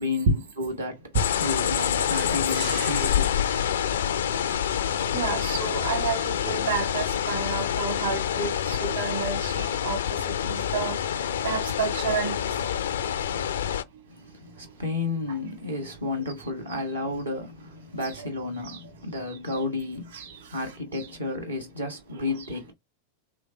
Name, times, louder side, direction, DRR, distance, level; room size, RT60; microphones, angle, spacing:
voice 1, 0.0-3.9 14.1-22.7, left 2 dB, 80° right, 1.3 m, -32 dB
sound 1, 1.1-13.8, left 9 dB, 65° left, 0.4 m, -27 dB
voice 2, 2.2-3.1 5.1-12.8 18.0-18.2 18.6-18.8 19.3-19.6 20.1-20.6 20.9-21.1 22.1-22.2, right 4 dB, 60° right, 1.4 m, -31 dB
3.2 x 3.1 x 3.9 m
figure-of-eight pair, 90°, 0 cm